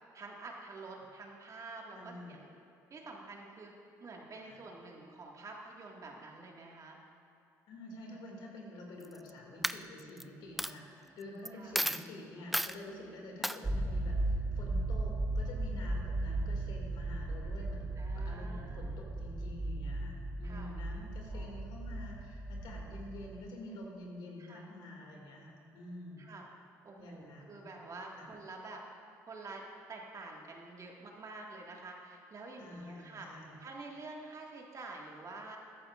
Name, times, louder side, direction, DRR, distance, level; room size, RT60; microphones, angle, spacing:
voice 1, 0.1-2.5 2.9-3.7 4.0-7.0 11.5-11.7 18.0-19.0 20.4-20.7 21.3-21.6 24.4-24.7 26.2-26.5 26.8-28.8 29.3-29.6 29.9-33.3 33.6-35.6, right 3 dB, 40° right, 0 dB, 1.8 m, -48 dB
voice 2, 1.9-2.4 4.4-4.6 7.7-26.3 27.0-27.7 28.2-28.3 32.6-33.6, left 1 dB, 65° left, 0 dB, 2.3 m, -48 dB
Coin (dropping), 9.0-9.3 9.6-10.2 10.6-10.7 11.5-11.6 11.7-12.0 12.5-12.8 13.4-13.6, equal, ahead, 0.3 m, -32 dB
sound 1, 13.6-23.5, right 2 dB, 25° right, 1.3 m, -36 dB
14.0 x 12.0 x 2.5 m, 2.6 s
supercardioid pair, 65°, 8 cm